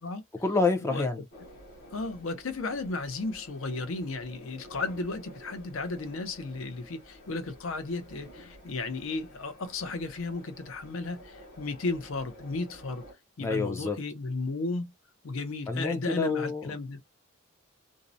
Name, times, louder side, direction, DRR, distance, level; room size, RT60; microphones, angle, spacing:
voice 1, 0.4-1.2 13.4-14.0 15.7-16.7, left 3 dB, 15° left, 0.4 m, -28 dB
sound 1, 1.3-13.1, equal, 45° left, 1.1 m, -51 dB
voice 2, 1.9-13.0 13.4-14.9 15.2-17.0, left 3 dB, 65° left, 0.5 m, -34 dB
2.6 x 2.0 x 2.6 m
head